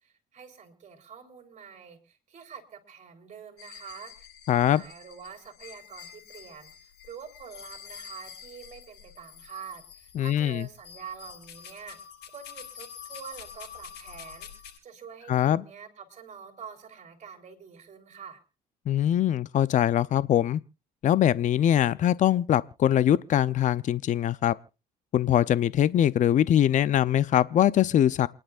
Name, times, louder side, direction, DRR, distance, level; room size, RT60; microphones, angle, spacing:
voice 1, 0.0-12.0 12.3-14.5 14.8-18.4, right 7 dB, 45° right, 3.7 m, -46 dB
sound 1, 3.6-14.8, left 8 dB, 85° left, 7.9 m, -47 dB
voice 2, 4.5-4.8 10.2-10.7 15.3-15.6 18.9-20.6 21.0-24.6 25.1-28.3, left 11 dB, 50° left, 0.6 m, -22 dB
28.5 x 10.5 x 2.5 m
cardioid pair, 110°, 17 cm